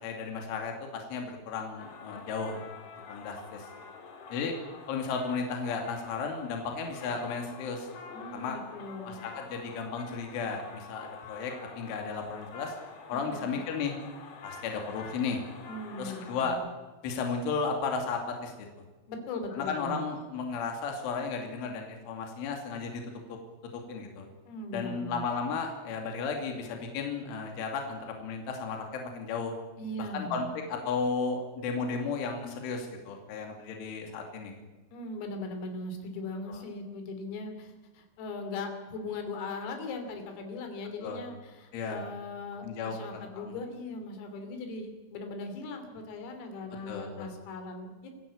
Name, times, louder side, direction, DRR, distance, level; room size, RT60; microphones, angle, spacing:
voice 1, 0.0-2.6 3.1-3.7 4.3-4.5 4.9-7.9 8.3-8.6 9.1-12.7 13.1-14.0 14.4-15.4 16.0-16.6 17.0-18.5 19.6-23.0 23.7-24.3 24.7-29.5 30.0-34.5 36.5-36.6 41.0-41.2 41.7-42.1 42.6-43.6 46.9-47.3, left 5 dB, 70° left, 3 dB, 5.1 m, -34 dB
sound 1, 1.8-16.5, left 5 dB, 50° left, 3.5 m, -47 dB
voice 2, 8.1-9.3 13.1-13.6 15.7-16.7 19.1-20.0 24.5-25.3 29.8-30.6 34.9-48.2, left 2 dB, 90° left, 6 dB, 5.7 m, -39 dB
27.0 x 16.0 x 8.7 m, 1.2 s
omnidirectional pair, 5.8 m